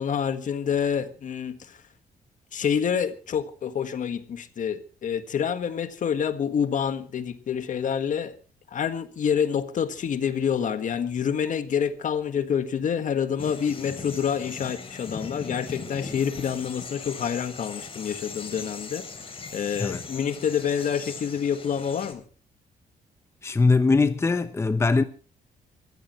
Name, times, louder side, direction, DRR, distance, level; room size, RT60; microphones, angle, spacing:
voice 1, 0.0-1.8 2.5-8.3 8.7-19.1 19.5-22.2, left 7 dB, 55° left, 1.6 m, -27 dB
sound 1, 13.4-22.1, left 5 dB, 35° left, 3.3 m, -39 dB
voice 2, 23.4-25.0, left 3 dB, 15° left, 0.8 m, -21 dB
23.5 x 15.0 x 3.2 m
cardioid pair, 135°, 16 cm